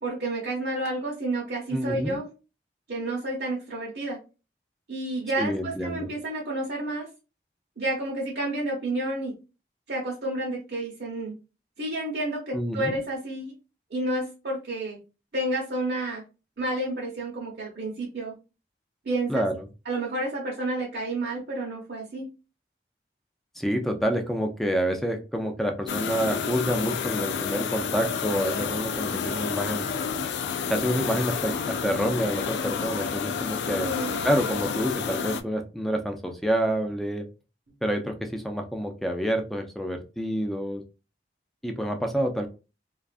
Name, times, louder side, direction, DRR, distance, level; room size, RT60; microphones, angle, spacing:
voice 1, 0.0-2.3 2.9-4.2 4.9-7.1 7.8-9.3 9.9-11.3 11.8-13.5 13.9-15.0 15.3-16.2 16.6-18.4 19.0-19.4 19.9-22.3 33.8-34.1, right 1 dB, 65° right, -3 dB, 0.7 m, -30 dB
voice 2, 1.7-2.2 5.4-6.1 12.5-13.0 19.3-19.7 23.6-29.9 30.7-33.9 34.2-37.2 37.8-40.8 41.6-42.5, equal, ahead, 4 dB, 0.3 m, -28 dB
sound 1, 25.9-35.4, left 6 dB, 80° left, 0.3 m, -30 dB
2.5 x 2.4 x 2.3 m, 0.31 s
head